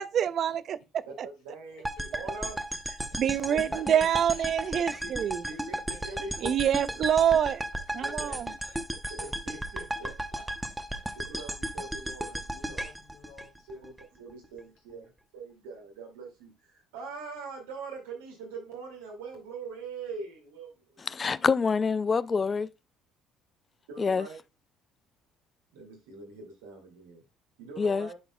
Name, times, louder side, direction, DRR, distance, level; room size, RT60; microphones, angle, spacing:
voice 1, 0.0-1.3 3.2-5.4 6.4-7.6 7.9-8.5, right 9 dB, 55° right, 0.4 m, -26 dB
voice 2, 1.1-2.6 3.5-4.0 5.5-6.5 8.0-8.5 9.1-10.1 11.1-12.9 13.7-21.0 23.9-24.4 25.7-27.2 27.6-28.1, right 4 dB, 85° right, 2.2 m, -43 dB
voice 3, 1.7-2.1 3.1-3.5 3.8-4.7 7.2-7.4 8.3-8.8 10.0-11.1 12.5-14.0 14.5-15.1, left 6 dB, 80° left, 2.1 m, -55 dB
sound 1, 1.8-14.0, right 1 dB, 10° right, 0.7 m, -35 dB
voice 4, 21.1-22.7 24.0-24.3 27.8-28.1, left 5 dB, 35° left, 0.3 m, -26 dB
11.0 x 4.1 x 2.2 m
hypercardioid pair, 70°, 0 cm